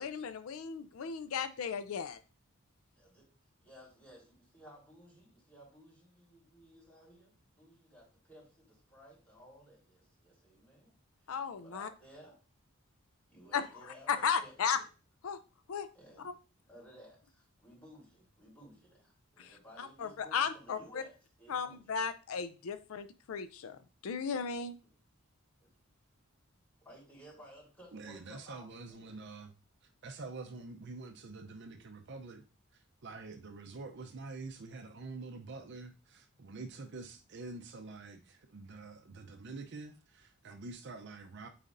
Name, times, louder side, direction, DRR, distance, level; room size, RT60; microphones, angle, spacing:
voice 1, 0.0-2.2 11.3-11.9 13.5-13.6 14.1-14.8 15.2-15.4 15.7-15.9 19.4-21.0 21.5-24.7, left 6 dB, 75° left, 0.4 m, -35 dB
voice 2, 2.9-3.3 3.6-11.0 11.6-12.3 13.3-14.8 15.9-16.3 16.7-21.9 24.8-25.0 25.6-25.7 26.8-29.2, equal, 5° left, 3.7 m, -57 dB
voice 3, 27.9-29.5 30.0-32.4 32.7-41.5, right 3 dB, 55° right, 0.6 m, -46 dB
8.8 x 4.2 x 2.5 m
head